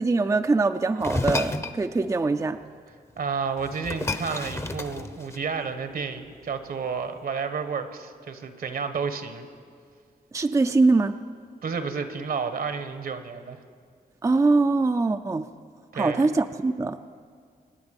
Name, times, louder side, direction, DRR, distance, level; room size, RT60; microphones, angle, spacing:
voice 1, 0.0-2.6 10.3-11.1 14.2-15.5 15.9-17.0, right 3 dB, 20° right, 8 dB, 0.4 m, -22 dB
sound 1, 1.0-1.8 3.2-3.3 3.6-5.6, left 2 dB, 15° left, 0.7 m, -30 dB
voice 2, 3.2-9.5 11.6-13.6 15.9-16.3, right 5 dB, 70° right, 9 dB, 1.2 m, -31 dB
25.5 x 9.5 x 5.3 m, 2.1 s
cardioid pair, 90°, 16 cm